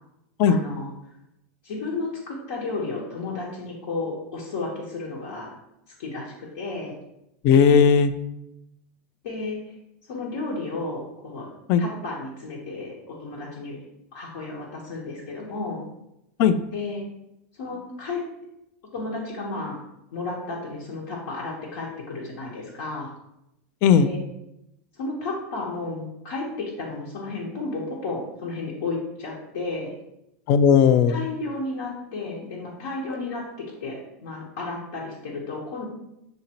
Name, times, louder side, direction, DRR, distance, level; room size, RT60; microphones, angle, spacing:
voice 1, 0.5-0.9 1.6-5.5 6.0-6.9 9.2-9.6 10.1-11.5 11.8-13.8 14.1-15.8 16.7-17.0 17.6-18.2 18.9-19.8 20.1-23.1 24.0-24.2 24.9-29.9 31.1-33.4 33.8-35.8, left 3 dB, 70° left, -5 dB, 1.2 m, -32 dB
voice 2, 7.4-8.1 11.7-11.8 16.4-16.6 23.8-24.1 30.5-31.2, left 7 dB, 45° left, 12 dB, 0.3 m, -16 dB
6.5 x 2.7 x 2.9 m, 0.84 s
supercardioid pair, 135°, 8 cm